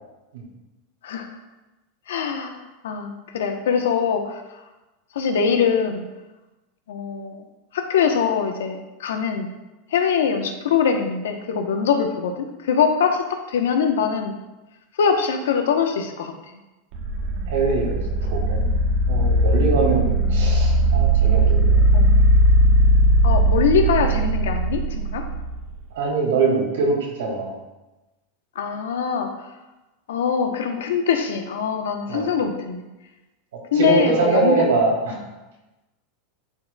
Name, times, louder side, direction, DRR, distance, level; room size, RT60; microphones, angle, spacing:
voice 1, 2.1-4.6 5.1-6.0 6.9-7.4 7.7-9.5 9.9-14.3 15.0-16.3 19.8-19.9 21.9-22.1 23.2-25.2 28.5-29.3 30.1-32.9 33.7-34.6, left 6 dB, 85° left, 5 dB, 0.9 m, -23 dB
sound 1, 16.9-25.7, right 1 dB, 60° right, 1.0 m, -18 dB
voice 2, 17.5-18.0 18.3-18.6 19.1-21.9 26.0-27.5 32.1-32.3 33.7-35.2, right 4 dB, 90° right, -1 dB, 2.1 m, -23 dB
11.0 x 4.7 x 2.3 m, 1.1 s
supercardioid pair, 125°, 0 cm